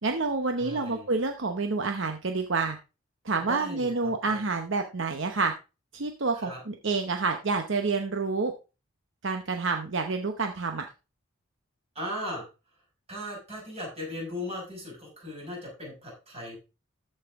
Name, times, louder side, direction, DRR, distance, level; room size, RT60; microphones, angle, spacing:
voice 1, 0.0-2.8 3.2-5.5 5.9-8.5 9.2-10.8, right 4 dB, 60° right, 5 dB, 0.8 m, -28 dB
voice 2, 0.6-1.1 3.4-4.4 6.4-6.6 12.0-12.4 13.1-16.6, left 1 dB, 30° right, -2 dB, 5.5 m, -37 dB
14.0 x 5.6 x 3.5 m, 0.30 s
head